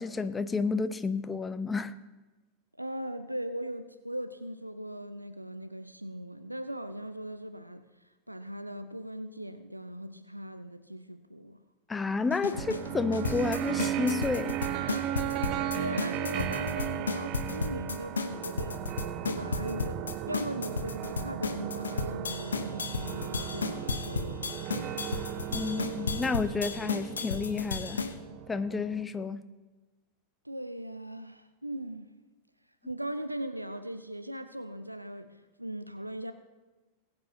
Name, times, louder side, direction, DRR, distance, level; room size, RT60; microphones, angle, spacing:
voice 1, 0.0-2.0 11.9-14.6 25.5-28.0 28.5-29.4, left 4 dB, 15° left, 0.4 m, -31 dB
voice 2, 2.8-7.8 8.3-11.6 15.7-18.8 19.2-24.9 30.4-32.1 32.8-36.3, right 1 dB, 85° right, 0.5 m, -39 dB
sound 1, 12.3-28.1, left 4 dB, 70° left, 0.8 m, -34 dB
sound 2, 12.5-29.1, right 12 dB, 40° right, 0.5 m, -36 dB
20.0 x 8.8 x 2.8 m
figure-of-eight pair, 90°, 0 cm